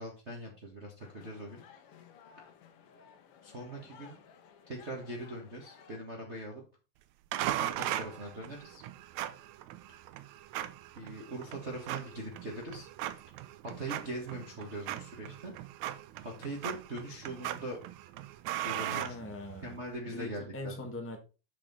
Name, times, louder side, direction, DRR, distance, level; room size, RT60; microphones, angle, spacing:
voice 1, 0.0-1.6 3.4-4.1 4.7-6.6 7.6-8.8 9.9-10.0 10.9-12.9 13.8-15.5 16.2-17.8 18.6-19.1 19.6-20.9, right 1 dB, 30° right, 1.3 m, -41 dB
sound 1, 1.0-6.0, left 7 dB, 60° left, 1.7 m, -57 dB
sound 2, 7.3-19.8, right 13 dB, 75° right, 1.9 m, -39 dB
voice 2, 18.9-19.8 20.1-21.2, left 2 dB, 10° left, 0.5 m, -41 dB
7.6 x 6.8 x 4.1 m
omnidirectional pair, 3.5 m